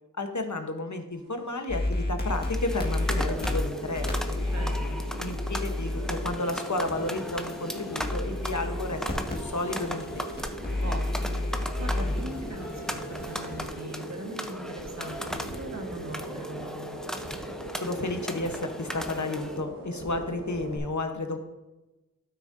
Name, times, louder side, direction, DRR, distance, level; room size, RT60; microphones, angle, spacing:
voice 1, 0.2-4.4 5.2-10.3 17.8-21.4, left 2 dB, 60° left, 6 dB, 1.1 m, -32 dB
sound 1, 1.1-20.8, right 1 dB, 85° right, 1.8 m, -40 dB
sound 2, 1.7-13.6, left 1 dB, 30° left, 1.8 m, -32 dB
sound 3, 2.3-19.6, equal, ahead, 0.7 m, -38 dB
voice 2, 4.4-5.0 10.8-17.0, right 1 dB, 55° right, 2 dB, 1.5 m, -41 dB
12.5 x 6.3 x 2.7 m, 1.0 s
wide cardioid pair, 45°, 33 cm